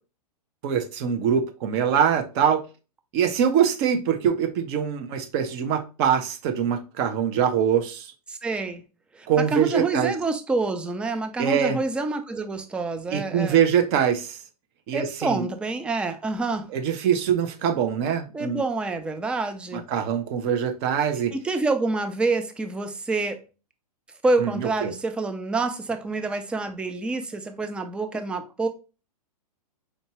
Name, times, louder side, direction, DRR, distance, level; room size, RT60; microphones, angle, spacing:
voice 1, 0.6-2.6 3.1-8.1 9.3-10.1 11.4-11.8 13.1-14.4 14.9-15.5 16.7-18.6 19.7-21.3 24.4-24.9, right 8 dB, 40° right, 0.8 m, -23 dB
voice 2, 8.3-8.8 9.1-13.6 14.9-16.7 18.3-19.9 21.3-23.4 24.2-28.7, right 3 dB, 5° right, 0.3 m, -27 dB
4.6 x 2.7 x 2.9 m
hypercardioid pair, 130°, 20 cm